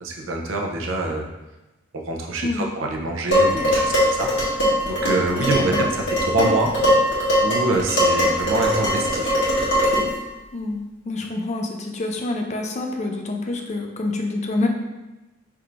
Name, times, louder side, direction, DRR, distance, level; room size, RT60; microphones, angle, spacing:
voice 1, 0.0-1.3 1.9-6.7 7.4-9.4, right 2 dB, 90° right, 1 dB, 0.6 m, -25 dB
Dishes pots and pans, 3.3-10.2, equal, 60° left, 1.4 m, -20 dB
voice 2, 5.5-5.9 10.5-14.7, left 2 dB, 35° left, 3 dB, 0.4 m, -27 dB
3.5 x 2.5 x 4.4 m, 1.0 s
head